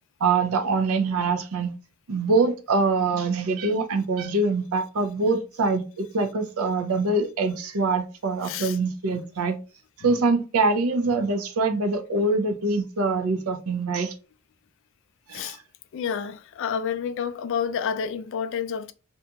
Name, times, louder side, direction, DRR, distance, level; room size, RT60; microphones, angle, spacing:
voice 1, 0.2-1.7 2.1-9.6 10.0-14.1 15.3-15.6, right 3 dB, 75° right, 0.5 m, -24 dB
voice 2, 8.4-8.8 15.3-15.6 15.9-18.9, left 7 dB, 60° left, 0.3 m, -29 dB
2.7 x 2.5 x 2.2 m
head